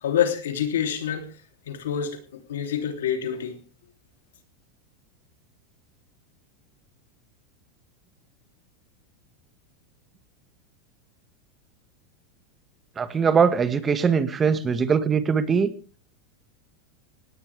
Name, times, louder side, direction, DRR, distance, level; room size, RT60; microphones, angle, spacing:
voice 1, 0.0-1.3 1.7-3.6, left 9 dB, 85° left, 3.2 m, -27 dB
voice 2, 13.0-15.7, right 6 dB, 25° right, 1.9 m, -21 dB
18.5 x 17.5 x 3.5 m
hypercardioid pair, 115°, 0 cm